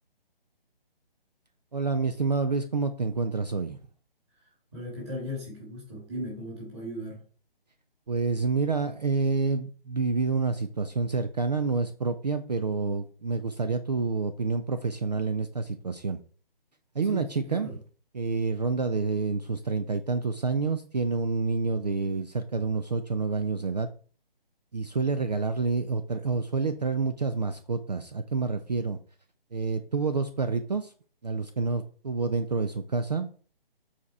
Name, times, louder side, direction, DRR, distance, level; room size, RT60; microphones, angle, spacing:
voice 1, 1.7-3.8 8.1-16.2 16.9-17.7 18.1-23.9 24.7-29.0 29.5-30.9 31.2-33.5, right 4 dB, 45° right, 0.5 m, -28 dB
voice 2, 4.7-7.2 17.0-17.8, left 1 dB, 25° right, 3.1 m, -37 dB
7.4 x 4.2 x 4.7 m
hypercardioid pair, 175°, 30 cm